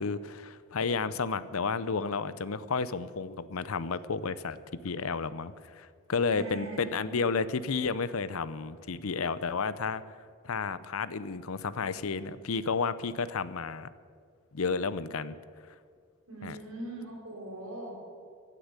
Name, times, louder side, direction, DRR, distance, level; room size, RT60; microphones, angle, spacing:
voice 1, 0.0-4.6 4.8-10.0 10.4-13.9 14.5-15.4 16.4-16.6, left 4 dB, 80° left, 16 dB, 0.7 m, -32 dB
voice 2, 6.3-7.3 16.3-18.0, right 1 dB, 75° right, -1 dB, 5.3 m, -41 dB
16.5 x 10.0 x 8.2 m, 2.1 s
head